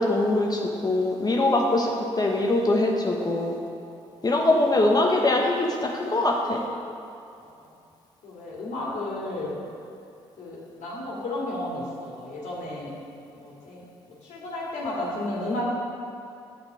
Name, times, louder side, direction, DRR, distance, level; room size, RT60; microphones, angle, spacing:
voice 1, 0.0-3.6 4.2-6.6, left 2 dB, 30° left, 0 dB, 1.0 m, -23 dB
voice 2, 7.4-7.7 8.2-9.5 10.4-12.9 13.3-13.8 14.2-15.6, left 1 dB, 60° left, -5 dB, 2.0 m, -33 dB
6.7 x 6.6 x 4.6 m, 2.5 s
hypercardioid pair, 50°, 14 cm